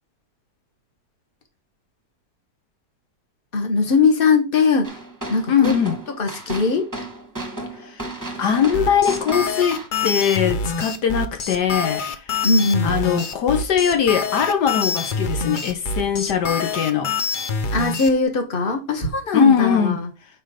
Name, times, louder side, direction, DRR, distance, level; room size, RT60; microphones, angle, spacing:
voice 1, 3.5-4.9 5.3-5.7 6.2-6.9 12.4-13.0 17.7-20.1, left 4 dB, 35° left, 1.5 m, -20 dB
sound 1, 4.8-9.9, right 2 dB, 15° right, 1.1 m, -33 dB
voice 2, 5.5-5.9 7.8-8.0 8.4-12.3 12.8-17.1 19.3-20.0, left 8 dB, 80° left, 1.6 m, -21 dB
sound 2, 8.7-18.1, left 4 dB, 60° left, 0.5 m, -26 dB
5.8 x 4.5 x 4.9 m
omnidirectional pair, 1.8 m